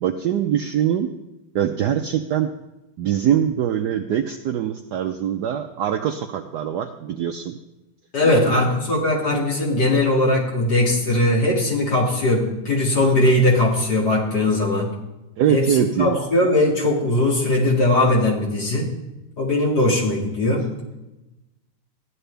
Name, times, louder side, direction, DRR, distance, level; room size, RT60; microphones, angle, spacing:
voice 1, 0.0-1.1 1.5-2.5 3.0-7.6 8.2-8.6 15.4-16.2, right 9 dB, 85° right, 6 dB, 0.9 m, -23 dB
voice 2, 8.1-14.9 15.5-18.9 19.4-20.7, left 1 dB, 50° left, -4 dB, 3.0 m, -19 dB
15.0 x 11.0 x 3.4 m, 0.99 s
omnidirectional pair, 2.4 m